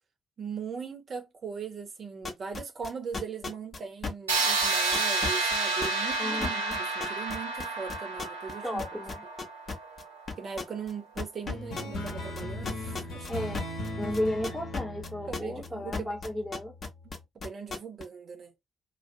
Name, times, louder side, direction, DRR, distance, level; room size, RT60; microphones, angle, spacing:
voice 1, 0.4-8.8 10.4-13.3 15.3-16.1 17.0-17.1 17.4-18.5, right 6 dB, 45° right, 0.7 m, -39 dB
sound 1, 2.2-8.5 8.8-10.0 10.3-10.9 11.2-15.7 15.9-18.0, left 4 dB, 40° left, 0.7 m, -35 dB
sound 2, 4.3-10.1, right 3 dB, 85° right, 0.5 m, -30 dB
voice 2, 6.2-6.7 8.6-9.2 12.7-13.0 13.3-13.6 14.0-16.7, left 1 dB, 5° right, 0.9 m, -34 dB
sound 3, 11.5-16.4, left 1 dB, 55° left, 1.0 m, -38 dB
2.3 x 2.0 x 2.6 m
figure-of-eight pair, 40°, 0 cm